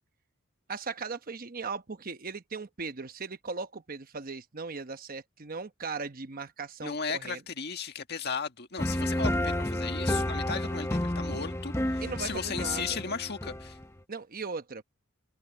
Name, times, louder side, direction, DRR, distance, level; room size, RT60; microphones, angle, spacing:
voice 1, 0.7-7.4 12.0-13.0 14.1-14.8, right 4 dB, 40° right, 1.0 m, -38 dB
voice 2, 6.8-13.8, left 5 dB, 50° left, 1.8 m, -35 dB
sound 1, 8.8-14.0, left 1 dB, 15° left, 1.0 m, -31 dB
head